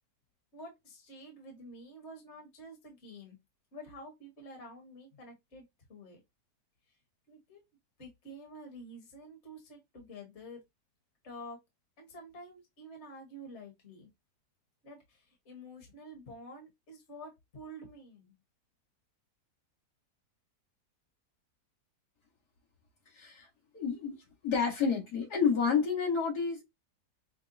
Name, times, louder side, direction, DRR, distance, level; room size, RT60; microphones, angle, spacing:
voice 1, 0.5-3.4 3.7-5.6 5.9-6.2 7.3-7.6 8.0-10.6 11.2-11.6 12.0-14.1 14.8-18.3, equal, 45° left, 1.7 m, -49 dB
voice 2, 23.1-23.5 23.7-24.2 24.4-26.6, left 6 dB, 70° left, 2.3 m, -29 dB
6.5 x 2.3 x 2.7 m
omnidirectional pair, 1.7 m